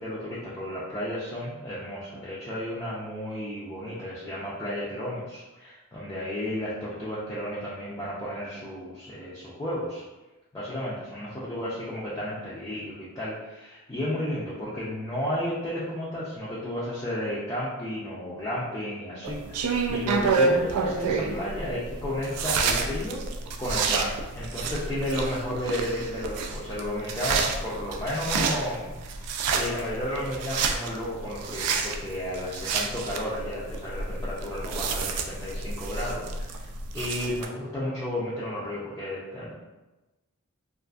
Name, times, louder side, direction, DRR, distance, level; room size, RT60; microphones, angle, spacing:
voice 1, 0.0-10.0 10.5-23.2 23.6-28.9 29.5-36.7 36.9-39.5, left 1 dB, 15° left, -9 dB, 0.3 m, -33 dB
sound 1, 19.2-37.5, right 4 dB, 90° right, 0.3 m, -29 dB
2.4 x 2.4 x 2.3 m, 1.1 s
head